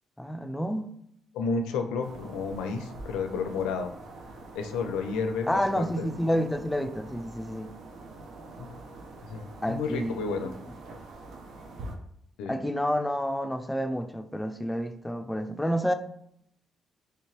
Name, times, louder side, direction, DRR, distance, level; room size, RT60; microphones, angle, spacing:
voice 1, 0.2-0.9 5.5-7.7 9.6-10.5 12.5-15.9, equal, 10° left, 7 dB, 0.4 m, -29 dB
voice 2, 1.3-3.9 4.5-6.1 8.6-8.7 9.3-10.5 12.4-12.5, left 4 dB, 90° left, 6 dB, 0.4 m, -31 dB
sound 1, 2.0-12.0, right 2 dB, 75° right, 0.5 m, -45 dB
3.3 x 2.8 x 3.0 m, 0.71 s
supercardioid pair, 65°, 0 cm